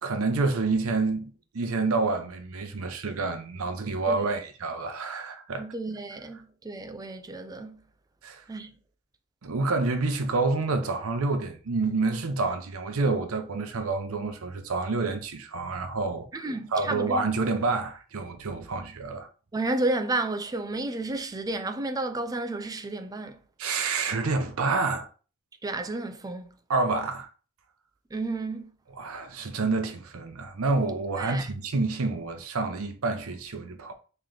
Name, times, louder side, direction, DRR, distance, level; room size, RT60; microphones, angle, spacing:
voice 1, 0.0-5.7 8.2-8.4 9.4-19.3 23.6-25.1 26.7-27.3 28.9-33.9, right 3 dB, 70° right, 0.6 m, -28 dB
voice 2, 5.6-7.8 8.5-8.7 16.3-17.3 19.5-23.4 25.6-26.5 28.1-28.7 31.2-31.5, right 2 dB, 15° right, 0.4 m, -31 dB
3.2 x 2.9 x 3.8 m
head